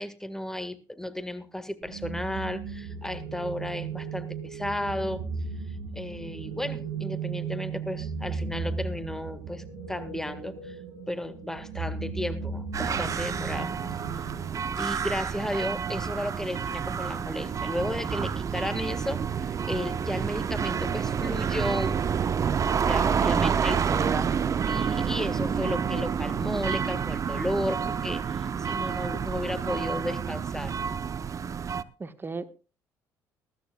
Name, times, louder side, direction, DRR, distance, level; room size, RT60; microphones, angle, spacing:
voice 1, 0.0-5.2 5.9-10.8 11.1-13.7 14.8-22.0 22.8-24.0 24.7-30.8, left 1 dB, 5° left, 11 dB, 1.8 m, -34 dB
sound 1, 1.8-14.5, right 5 dB, 75° right, 4.6 m, -36 dB
sound 2, 12.7-31.8, right 7 dB, 40° right, 0.7 m, -29 dB
voice 2, 23.2-24.4 32.0-32.6, right 4 dB, 25° right, 11 dB, 1.4 m, -34 dB
20.0 x 13.5 x 2.4 m, 0.31 s
supercardioid pair, 70°, 8 cm